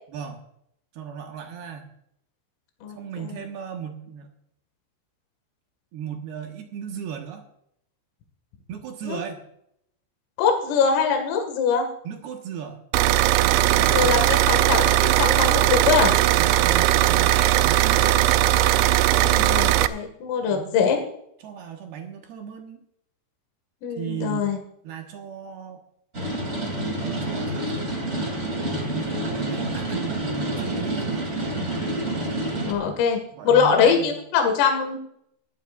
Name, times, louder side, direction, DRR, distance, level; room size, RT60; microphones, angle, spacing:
voice 1, 0.1-0.4 0.9-1.9 2.9-4.3 5.9-7.5 8.7-9.5 12.0-12.8 13.4-14.3 16.4-18.5 20.5-20.8 21.4-22.8 24.0-24.5 24.8-25.8 27.0-31.3 32.8-33.0 33.3-34.2, right 8 dB, 65° right, 3 dB, 2.8 m, -36 dB
voice 2, 2.8-3.4 9.0-9.2 10.4-11.9 13.9-16.1 19.2-21.0 23.8-24.6 32.7-33.2 33.4-35.0, left 6 dB, 80° left, 3 dB, 4.5 m, -22 dB
sound 1, 12.9-19.9, right 14 dB, 90° right, 2.5 m, -19 dB
sound 2, 26.1-32.7, right 1 dB, 20° right, 1.9 m, -28 dB
19.5 x 14.0 x 2.5 m, 0.73 s
omnidirectional pair, 5.8 m